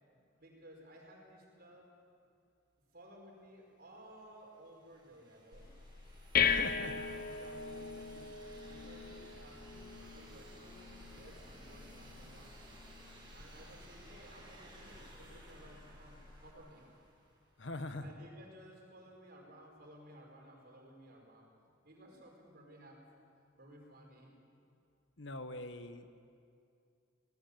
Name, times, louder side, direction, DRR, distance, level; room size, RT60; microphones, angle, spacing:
voice 1, 0.4-1.9 2.9-5.7 6.6-10.8 11.1-12.7 13.3-16.8 18.0-21.5 21.8-23.2 23.5-24.3, right 1 dB, 50° right, -1 dB, 5.1 m, -56 dB
sound 1, 4.0-17.7, right 1 dB, 25° right, 5.6 m, -58 dB
sound 2, 5.5-16.5, left 7 dB, 50° left, 1.0 m, -39 dB
voice 2, 6.4-6.9 17.6-18.1 25.2-26.2, left 2 dB, 65° left, 9 dB, 1.3 m, -43 dB
24.5 x 18.5 x 7.7 m, 2.5 s
head